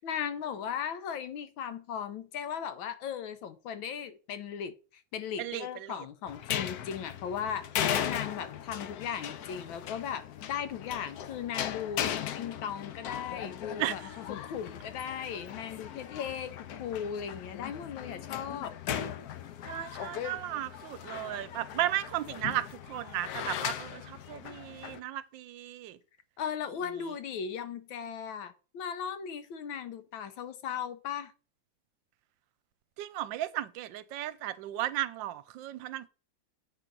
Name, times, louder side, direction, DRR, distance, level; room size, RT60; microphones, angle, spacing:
voice 1, 0.0-14.0 14.3-16.5 16.8-18.7 26.4-31.3, left 8 dB, 85° left, 1.6 m, -37 dB
voice 2, 5.4-5.9 13.8-13.9 19.6-26.0 33.0-36.1, right 13 dB, 80° right, 1.3 m, -35 dB
sound 1, 6.3-25.0, left 10 dB, 65° left, 1.0 m, -38 dB
8.2 x 3.8 x 6.0 m
omnidirectional pair, 2.1 m